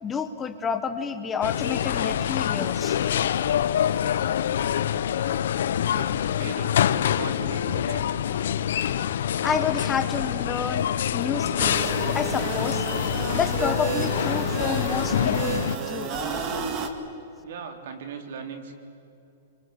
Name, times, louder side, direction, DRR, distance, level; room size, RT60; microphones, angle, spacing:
voice 1, 0.0-3.0 9.4-12.8 13.3-16.1, left 6 dB, 15° left, 8 dB, 1.0 m, -30 dB
sound 1, 1.4-15.8, left 10 dB, 70° left, 0.9 m, -26 dB
voice 2, 5.9-6.8 7.1-8.1 17.4-18.7, right 6 dB, 60° right, 5 dB, 3.5 m, -38 dB
sound 2, 11.6-16.9, right 5 dB, 30° right, 1.9 m, -31 dB
27.0 x 24.5 x 8.3 m, 2.7 s
hypercardioid pair, 165°, 0 cm